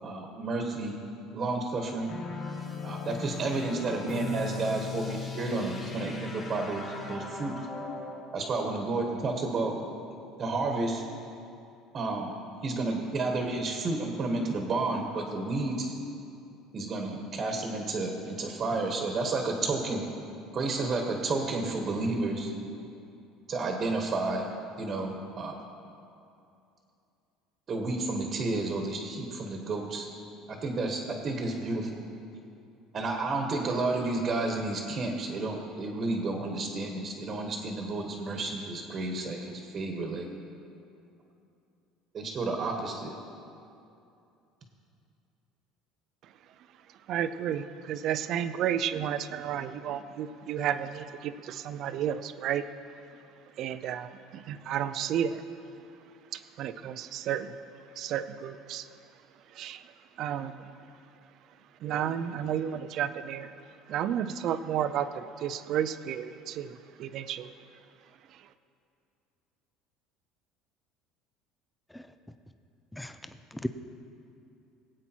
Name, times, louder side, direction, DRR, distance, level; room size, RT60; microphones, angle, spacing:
voice 1, 0.0-1.0 1.3-2.1 2.8-7.5 8.3-9.7 10.4-11.0 11.9-12.3 12.6-16.0 16.7-20.0 20.5-22.5 23.5-24.4 24.8-25.6 27.7-30.1 30.5-32.0 32.9-40.3 42.1-43.2, right 3 dB, 30° right, 2 dB, 1.3 m, -31 dB
sound 1, 2.1-8.3, left 4 dB, 25° left, 2.7 m, -38 dB
voice 2, 47.1-52.6 53.6-55.4 56.3-57.6 58.0-58.9 59.5-60.7 61.8-63.5 63.9-67.5 68.3-68.5, right 9 dB, 50° right, 12 dB, 0.5 m, -32 dB
voice 3, 72.9-73.7, equal, 5° left, 8 dB, 0.5 m, -37 dB
20.0 x 8.6 x 4.5 m, 2.7 s
cardioid pair, 150°, 0 cm